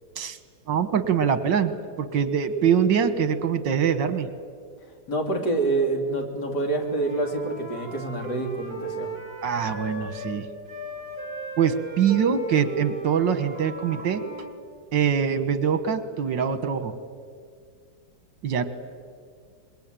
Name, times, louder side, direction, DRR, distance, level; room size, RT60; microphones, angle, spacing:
voice 1, 0.7-1.7 2.0-4.3 9.4-10.5 11.6-14.2 14.9-16.9 18.4-18.7, right 7 dB, 75° right, 11 dB, 1.9 m, -23 dB
voice 2, 5.1-9.1, right 2 dB, 65° left, 2 dB, 3.5 m, -27 dB
Wind instrument woodwind instrument, 6.7-10.4 10.7-14.5, right 2 dB, 55° right, 6.2 m, -37 dB
25.0 x 22.0 x 9.0 m, 2.1 s
omnidirectional pair, 2.0 m